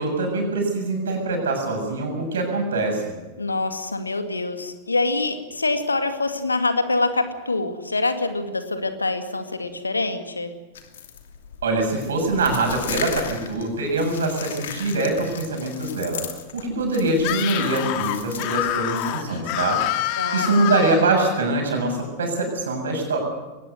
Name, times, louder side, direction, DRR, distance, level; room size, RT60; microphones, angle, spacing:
voice 1, 0.0-3.1 11.6-16.2 16.5-19.8 20.3-23.2, right 2 dB, 65° right, 2 dB, 7.1 m, -23 dB
voice 2, 3.4-10.5 20.2-20.6, left 3 dB, 80° left, 8 dB, 2.1 m, -25 dB
sound 1, 10.7-19.2, left 8 dB, 60° left, 2.7 m, -36 dB
Screaming, 17.2-21.1, left 13 dB, 45° left, 2.1 m, -26 dB
22.0 x 19.0 x 7.9 m, 1.2 s
figure-of-eight pair, 90°, 0 cm